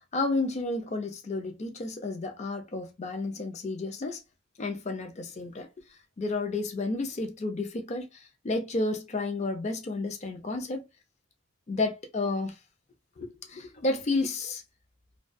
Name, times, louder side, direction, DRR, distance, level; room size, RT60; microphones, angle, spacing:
voice 1, 0.1-4.2 4.6-5.7 6.2-8.1 8.4-10.9 11.7-12.5 13.2-14.6, left 2 dB, 35° left, 0.5 m, -31 dB
2.2 x 2.2 x 2.5 m
head